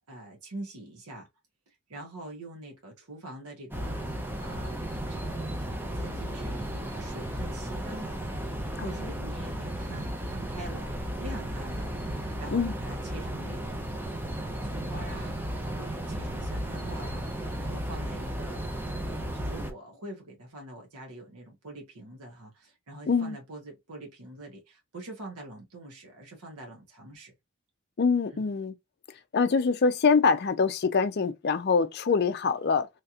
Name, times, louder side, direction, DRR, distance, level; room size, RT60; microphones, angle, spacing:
voice 1, 0.1-1.3 1.7-4.0 4.4-4.8 5.1-8.2 8.6-13.9 14.3-15.4 15.7-18.7 19.3-27.3 28.3-28.5, right 1 dB, 85° right, 1.1 m, -45 dB
sound 1, 3.7-19.7, right 1 dB, 10° right, 0.5 m, -34 dB
voice 2, 23.1-23.4 28.0-28.7 29.3-32.9, left 5 dB, 45° left, 0.4 m, -24 dB
3.2 x 2.8 x 2.4 m
head